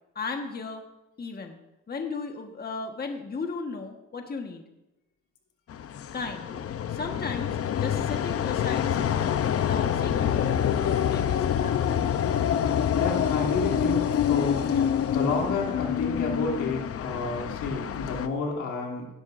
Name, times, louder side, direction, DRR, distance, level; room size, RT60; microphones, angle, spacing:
voice 1, 0.1-0.8 1.2-1.6 1.9-4.6 6.1-6.5 6.9-12.3, left 4 dB, 30° left, 3 dB, 1.4 m, -36 dB
sound 1, 5.7-18.3, left 9 dB, 50° left, 0.7 m, -26 dB
voice 2, 13.0-19.1, left 3 dB, 90° left, -1 dB, 3.0 m, -31 dB
17.0 x 12.0 x 2.6 m, 0.94 s
cardioid pair, 90°, 30 cm